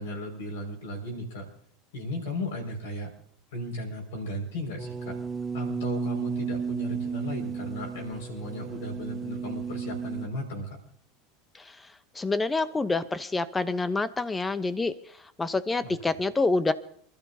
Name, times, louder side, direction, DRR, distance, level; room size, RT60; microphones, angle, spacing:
voice 1, 0.0-1.5 1.9-3.1 3.5-5.2 5.5-10.7 15.8-15.9, left 1 dB, 70° left, 2 dB, 5.5 m, -35 dB
sound 1, 4.8-10.3, right 6 dB, 25° right, 1.0 m, -33 dB
voice 2, 12.1-14.9 15.4-16.7, left 3 dB, 15° left, 15 dB, 0.9 m, -27 dB
28.0 x 12.5 x 2.8 m, 0.63 s
figure-of-eight pair, 75°, 0 cm